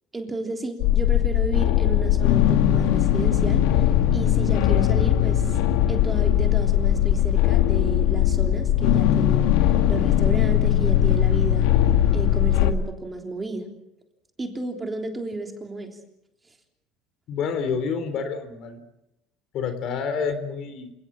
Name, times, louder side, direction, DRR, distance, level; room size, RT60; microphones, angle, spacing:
voice 1, 0.1-5.6 5.9-11.7 12.1-13.7 14.4-16.0, right 2 dB, 15° right, 3 dB, 3.4 m, -32 dB
sound 1, 0.8-12.7, left 11 dB, 80° left, 1.7 m, -20 dB
voice 2, 17.3-18.8 19.5-20.9, left 6 dB, 50° left, 10 dB, 3.6 m, -28 dB
28.5 x 18.5 x 7.5 m, 0.85 s
cardioid pair, 140°, 0 cm